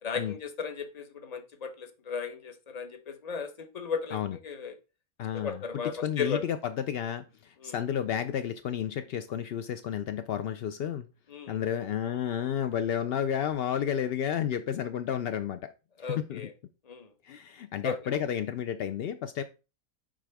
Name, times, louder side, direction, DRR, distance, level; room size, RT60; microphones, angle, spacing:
voice 1, 0.0-4.2 4.4-4.7 5.4-6.4 7.6-7.8 11.3-11.5 16.0-16.5 16.9-17.1 17.8-18.0, left 5 dB, 35° left, 0.7 m, -35 dB
voice 2, 5.2-11.1 11.5-15.7 16.0-16.5 17.2-19.4, left 9 dB, 75° left, 0.5 m, -31 dB
7.4 x 4.9 x 3.4 m
omnidirectional pair, 1.5 m